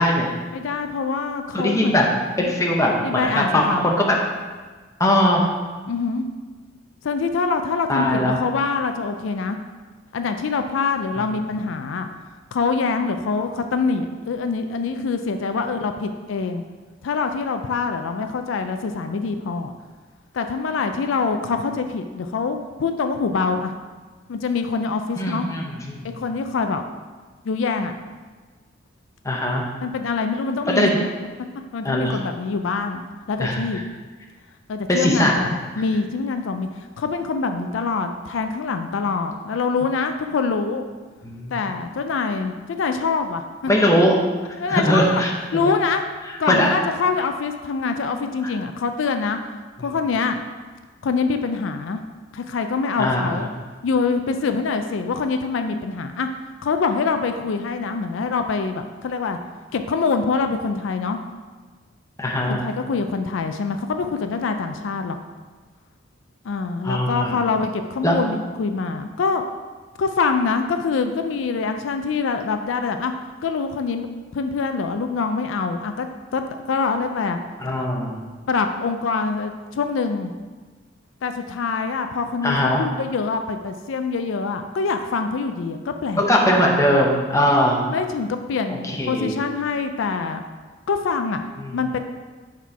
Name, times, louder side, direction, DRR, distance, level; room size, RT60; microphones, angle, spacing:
voice 1, 0.0-0.3 1.5-2.1 2.4-4.2 5.0-5.5 7.9-8.5 25.2-26.1 29.2-29.6 30.7-31.0 31.8-32.2 33.4-33.8 34.9-35.6 41.2-41.8 43.7-44.2 44.5-45.3 45.6-45.7 46.5-46.7 48.4-48.5 49.8-49.9 53.0-53.4 62.2-62.6 66.8-67.4 68.0-68.2 77.6-78.2 82.4-82.8 86.2-87.8 88.7-89.4 91.6-91.8, left 1 dB, 15° left, -1 dB, 0.8 m, -20 dB
voice 2, 0.5-1.9 2.4-2.5 3.0-3.9 5.9-6.3 7.0-9.6 10.1-12.1 12.5-16.6 17.0-19.7 20.3-23.7 24.3-25.5 26.1-26.8 27.4-27.9 29.8-31.1 31.7-33.8 34.7-36.7 37.0-40.8 41.5-43.9 44.6-45.2 45.5-49.4 49.8-50.4 51.0-52.0 52.3-53.5 53.8-56.3 56.6-59.4 59.7-61.2 62.5-65.2 66.4-69.4 70.0-73.1 73.4-74.1 74.3-76.4 76.7-77.4 78.5-80.3 81.2-86.2 87.8-90.4 90.9-91.4 91.7-92.0, left 4 dB, 75° left, 7 dB, 0.4 m, -25 dB
6.1 x 4.3 x 4.6 m, 1.4 s
head